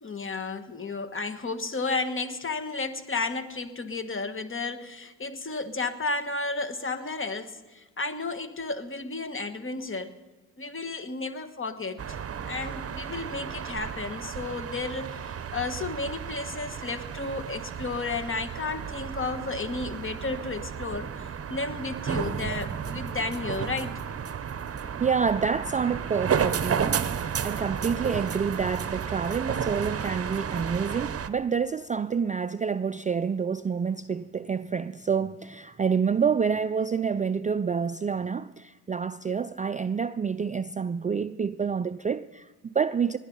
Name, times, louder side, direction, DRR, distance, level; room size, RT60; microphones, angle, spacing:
voice 1, 0.0-10.1 10.6-12.2 12.4-24.0, left 3 dB, 30° left, 1.4 m, -33 dB
sound 1, 12.0-31.3, right 7 dB, 35° right, 0.9 m, -33 dB
voice 2, 25.0-43.2, right 6 dB, 20° right, 0.4 m, -28 dB
20.0 x 10.0 x 5.4 m
supercardioid pair, 55°, 39 cm